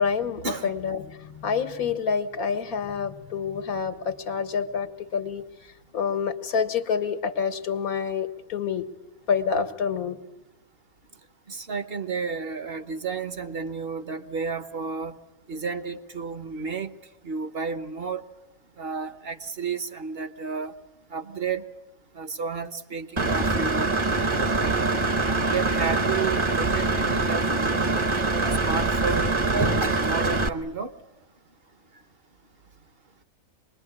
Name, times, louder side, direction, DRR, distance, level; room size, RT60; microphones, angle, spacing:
voice 1, 0.0-5.4 5.9-8.9 9.3-10.2, left 6 dB, 85° left, 9 dB, 1.8 m, -27 dB
voice 2, 11.5-15.1 15.5-16.9 17.2-18.2 18.8-20.7 21.1-21.6 22.1-23.9 24.5-28.0 28.6-30.9, right 5 dB, 45° right, 11 dB, 1.2 m, -32 dB
Engine / Mechanisms, 23.2-30.5, right 3 dB, 25° right, 0.9 m, -24 dB
26.5 x 21.0 x 9.8 m, 1.0 s
omnidirectional pair, 1.5 m